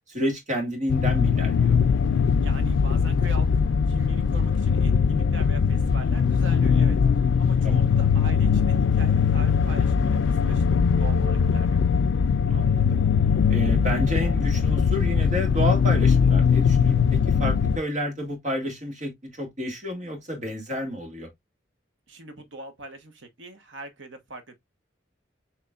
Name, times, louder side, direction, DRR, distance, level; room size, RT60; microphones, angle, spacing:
voice 1, 0.1-1.8 7.6-7.8 12.5-13.0 13.5-21.3, equal, 40° right, 1.8 m, -30 dB
sound 1, 0.9-17.8, left 6 dB, 80° left, 0.3 m, -21 dB
voice 2, 2.4-7.0 7.4-10.6 11.0-11.8 22.1-24.6, right 2 dB, 80° right, 1.1 m, -41 dB
6.7 x 3.0 x 2.4 m
head